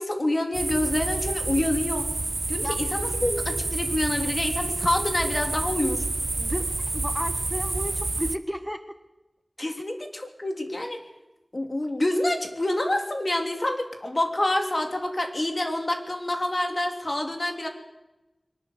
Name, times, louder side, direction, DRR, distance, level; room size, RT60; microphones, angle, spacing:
voice 1, 0.0-2.1 2.5-6.1 9.6-11.0 11.5-17.7, left 1 dB, 45° left, 4 dB, 3.5 m, -27 dB
sound 1, 0.5-8.4, right 2 dB, 60° right, 1.0 m, -29 dB
voice 2, 6.4-8.9, equal, ahead, 8 dB, 1.3 m, -33 dB
23.0 x 19.5 x 7.7 m, 1.0 s
wide cardioid pair, 45°, 0 cm